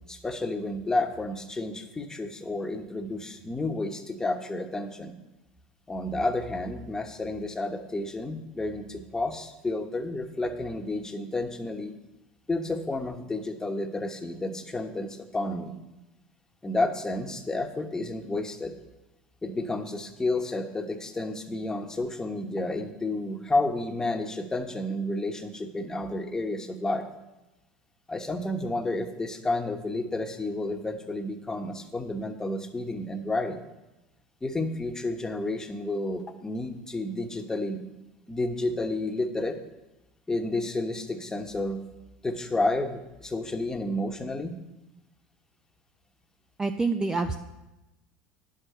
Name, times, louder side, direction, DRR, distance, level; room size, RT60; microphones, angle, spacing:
voice 1, 0.1-5.1 5.9-11.9 12.5-15.8 16.6-18.7 19.4-27.0 28.1-33.6 34.4-37.8 38.3-39.6 40.3-41.8 42.2-44.5, left 2 dB, 15° left, 5 dB, 1.2 m, -31 dB
voice 2, 46.6-47.4, right 3 dB, 15° right, 7 dB, 0.5 m, -26 dB
9.6 x 6.4 x 6.8 m, 0.99 s
supercardioid pair, 95°, 4 cm